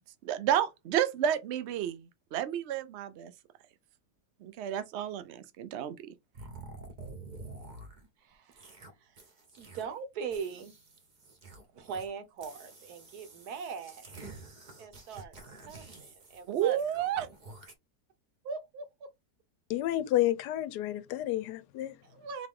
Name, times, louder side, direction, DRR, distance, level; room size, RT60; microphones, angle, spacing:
voice 1, 0.2-3.3 4.4-6.0 16.5-17.3, right 10 dB, 85° right, 0.5 m, -31 dB
sound 1, 6.3-8.1 8.5-8.9 9.2-10.0 10.3-12.1 12.4-17.7, right 3 dB, 35° right, 0.9 m, -49 dB
voice 2, 8.2-8.8 9.0-9.2 9.6-10.7 11.7-14.0 14.8-15.3 15.6-16.8 18.4-19.1 22.0-22.5, right 5 dB, 70° right, 1.3 m, -40 dB
voice 3, 19.7-21.9, left 14 dB, 75° left, 1.1 m, -30 dB
3.9 x 3.2 x 3.6 m
omnidirectional pair, 1.8 m